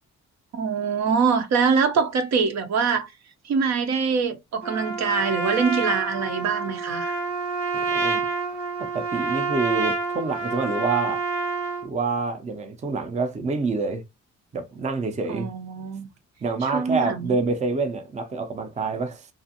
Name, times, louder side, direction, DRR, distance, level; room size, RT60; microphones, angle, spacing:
voice 1, 0.5-3.1 3.4-7.1 15.3-16.1 16.6-17.5, right 5 dB, 60° right, 0.7 m, -24 dB
Trumpet, 4.6-11.9, right 3 dB, 90° right, 1.3 m, -28 dB
voice 2, 7.7-8.2 8.8-11.2 11.8-14.0 14.5-15.5 16.4-19.3, right 4 dB, 25° right, 0.5 m, -27 dB
2.5 x 2.4 x 2.7 m
cardioid pair, 90°, 30 cm